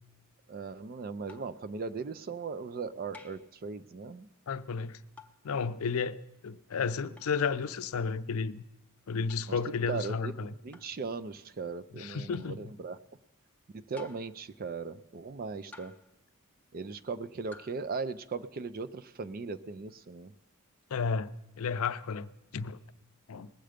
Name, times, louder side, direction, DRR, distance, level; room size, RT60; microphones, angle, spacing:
voice 1, 0.5-4.3 9.5-10.3 10.6-13.0 13.7-15.9 16.7-20.3, right 4 dB, 40° right, 0.4 m, -38 dB
sound 1, 1.3-1.6 3.1-3.5 5.2-5.4 7.2-7.3 9.3-9.5 10.7-11.0 12.3-12.6 13.9-14.4 15.7-16.2 17.5-17.8, left 4 dB, 5° left, 0.5 m, -52 dB
voice 2, 4.5-5.0 5.4-8.6 9.1-10.5 11.9-12.7 20.9-22.8 23.3-23.5, left 5 dB, 70° left, 0.5 m, -33 dB
20.0 x 7.8 x 5.1 m
head